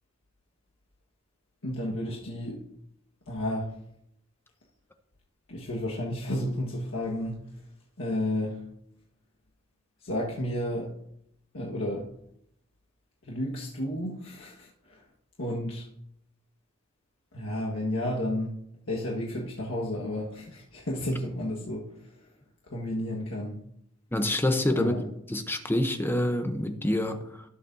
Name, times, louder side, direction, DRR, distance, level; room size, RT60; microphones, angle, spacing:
voice 1, 1.6-2.6 3.3-3.7 5.5-7.4 8.0-8.6 10.0-10.9 11.5-12.1 13.2-15.0 15.4-15.9 17.3-18.5 18.9-21.9 22.7-23.6 24.7-25.1, left 1 dB, 80° left, 1.5 m, -32 dB
voice 2, 24.1-24.9 25.3-27.4, left 1 dB, 10° left, 0.7 m, -27 dB
20.0 x 7.0 x 2.7 m
head